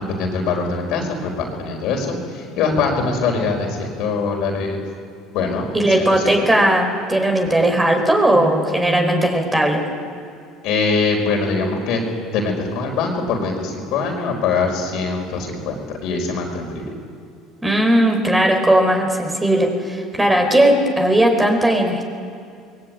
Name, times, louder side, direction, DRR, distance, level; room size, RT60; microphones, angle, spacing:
voice 1, 0.1-4.8 5.3-6.3 10.6-12.0 12.3-16.9, left 4 dB, 65° left, 1 dB, 4.8 m, -23 dB
voice 2, 5.7-9.8 17.6-22.1, right 1 dB, 10° right, 3 dB, 4.7 m, -17 dB
21.0 x 18.0 x 9.1 m, 2.5 s
supercardioid pair, 90°, 0 cm